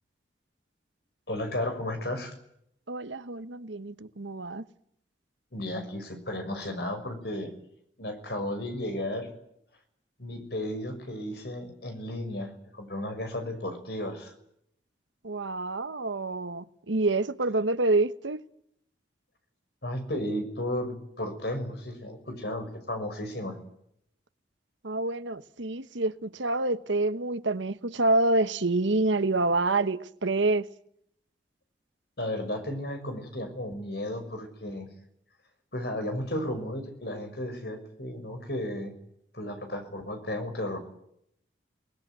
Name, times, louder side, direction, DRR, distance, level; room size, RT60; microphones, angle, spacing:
voice 1, 1.3-2.3 5.5-7.5 8.0-9.3 10.2-14.3 19.8-23.6 32.2-34.9 35.7-39.0 39.3-40.8, left 1 dB, 60° left, 5.9 m, -34 dB
voice 2, 2.9-4.6 15.2-18.4 24.8-30.7, right 2 dB, 90° right, 1.2 m, -27 dB
28.0 x 20.0 x 9.1 m
head